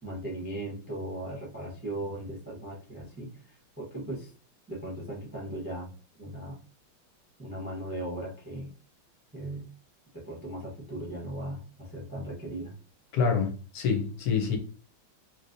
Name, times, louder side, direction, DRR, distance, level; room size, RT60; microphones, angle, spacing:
voice 1, 0.0-4.3 4.7-5.9 6.2-6.6 7.4-8.7 9.3-9.7 10.1-12.7, right 1 dB, 10° right, 0.4 m, -38 dB
voice 2, 13.1-14.6, left 5 dB, 65° left, 1.0 m, -27 dB
3.2 x 2.9 x 2.6 m
omnidirectional pair, 2.1 m